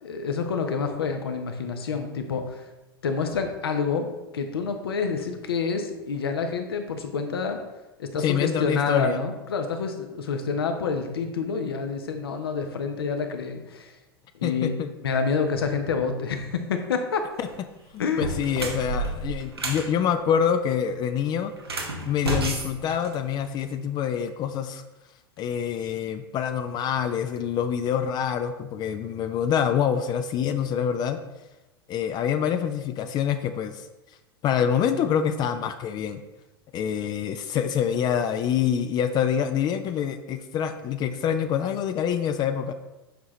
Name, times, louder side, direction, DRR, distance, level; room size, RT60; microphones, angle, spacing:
voice 1, 0.0-2.7 3.0-4.1 4.3-7.6 8.0-14.0 14.4-17.3 18.0-18.3, left 5 dB, 75° left, 6 dB, 0.9 m, -28 dB
voice 2, 8.2-9.2 14.4-14.9 17.4-17.5 17.9-21.5 22.1-24.8 25.4-31.2 31.9-33.8 34.4-36.2 36.7-42.7, left 8 dB, 35° left, 9 dB, 0.4 m, -26 dB
sound 1, 17.3-17.5 18.1-19.9 21.6-23.6, right 1 dB, 90° right, 1.0 m, -30 dB
8.1 x 4.8 x 3.1 m, 1.1 s
figure-of-eight pair, 90°, 13 cm